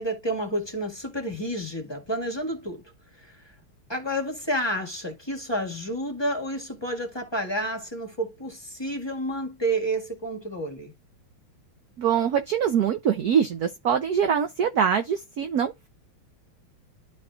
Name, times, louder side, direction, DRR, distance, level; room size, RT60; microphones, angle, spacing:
voice 1, 0.0-2.8 3.3-3.4 3.9-10.9, right 1 dB, 15° left, 1.6 m, -30 dB
voice 2, 12.0-15.9, right 8 dB, 65° right, 1.0 m, -24 dB
12.0 x 4.2 x 2.4 m
omnidirectional pair, 2.3 m